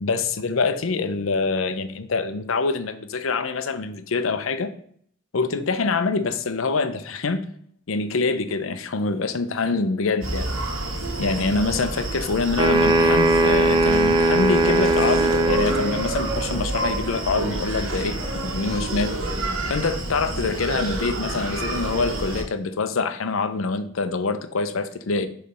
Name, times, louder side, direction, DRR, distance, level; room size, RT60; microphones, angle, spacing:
voice 1, 0.0-4.7 5.3-7.5 7.9-10.5 11.2-19.1 19.7-25.3, left 4 dB, 75° left, 11 dB, 0.6 m, -25 dB
Screaming, 10.2-22.4, right 2 dB, 75° right, 1.4 m, -28 dB
sound 1, 12.6-15.9, right 2 dB, 20° right, 0.5 m, -19 dB
6.7 x 3.3 x 5.4 m, 0.63 s
head